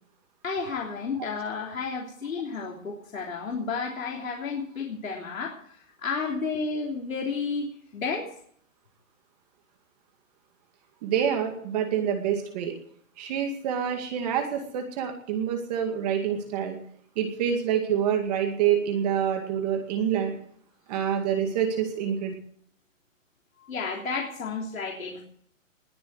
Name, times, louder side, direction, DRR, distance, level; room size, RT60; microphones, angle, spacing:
voice 1, 0.4-8.3 23.6-25.2, left 4 dB, 85° left, -1 dB, 3.5 m, -32 dB
voice 2, 11.0-12.7 13.2-16.8 17.2-20.3 20.9-22.3, right 8 dB, 30° right, 5 dB, 2.2 m, -27 dB
20.0 x 7.1 x 8.0 m, 0.63 s
hypercardioid pair, 155°, 40 cm